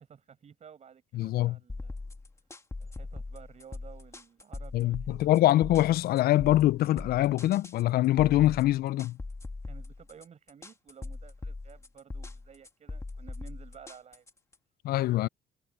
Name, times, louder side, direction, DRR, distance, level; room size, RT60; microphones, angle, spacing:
voice 1, 0.0-2.0 2.8-5.3 9.6-14.3, right 7 dB, 40° right, 5.9 m, -53 dB
voice 2, 1.1-1.6 4.7-9.2 14.8-15.3, left 15 dB, 65° left, 0.5 m, -24 dB
sound 1, 1.7-14.5, left 3 dB, 15° left, 2.3 m, -41 dB
cardioid pair, 110°, 17 cm